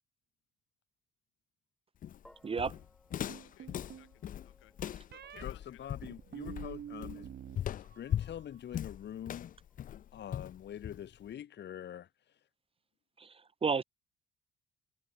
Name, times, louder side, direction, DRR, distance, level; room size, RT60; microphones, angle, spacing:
Walk footsteps, 2.0-11.3, left 10 dB, 45° left, 0.4 m, -39 dB
sound 1, 2.2-10.6, equal, 5° left, 7.6 m, -68 dB
voice 1, 2.4-2.8 13.2-13.8, right 5 dB, 30° right, 0.6 m, -32 dB
sound 2, 3.3-4.1 5.1-5.4 6.0-7.6 7.8-8.4, right 9 dB, 55° right, 1.5 m, -46 dB
voice 2, 3.4-4.7 5.1-5.9, left 14 dB, 85° left, 3.7 m, -59 dB
voice 3, 5.4-7.3 7.7-9.5 10.1-12.1, left 10 dB, 60° left, 1.6 m, -45 dB
cardioid pair, 90°, 20 cm